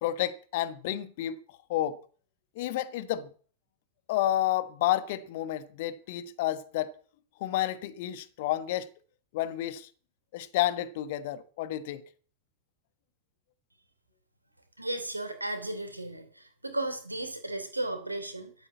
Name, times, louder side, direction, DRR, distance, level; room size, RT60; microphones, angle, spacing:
voice 1, 0.0-1.3 1.7-2.0 2.6-3.3 4.1-6.9 7.4-8.9 9.3-9.9 10.3-12.0, left 13 dB, 50° left, 1.3 m, -30 dB
voice 2, 14.8-18.5, right 1 dB, 85° right, 3.0 m, -35 dB
13.0 x 8.7 x 8.3 m
figure-of-eight pair, 90°, 0 cm